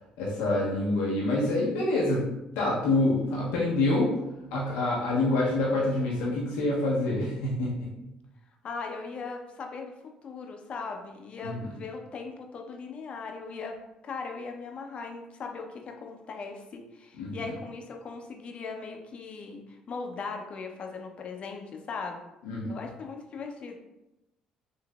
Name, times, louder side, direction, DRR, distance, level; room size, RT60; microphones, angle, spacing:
voice 1, 0.2-4.1 4.5-7.7 11.4-11.5 17.2-17.3 22.4-22.7, left 2 dB, 85° left, -5 dB, 0.7 m, -26 dB
voice 2, 8.6-9.9 10.2-13.8 14.0-22.2 22.7-23.7, left 4 dB, 50° left, 3 dB, 0.5 m, -39 dB
3.8 x 2.6 x 2.3 m, 0.93 s
supercardioid pair, 75°, 3 cm